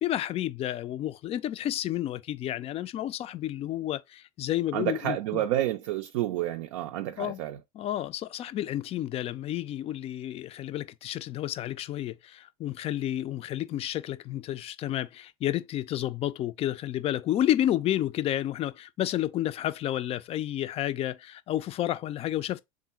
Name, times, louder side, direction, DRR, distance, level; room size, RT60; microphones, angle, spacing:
voice 1, 0.0-5.4 7.2-7.4 7.8-22.6, left 12 dB, 35° left, 0.4 m, -31 dB
voice 2, 4.7-7.6, right 13 dB, 65° right, 0.4 m, -29 dB
3.6 x 2.5 x 4.2 m
figure-of-eight pair, 75°, 18 cm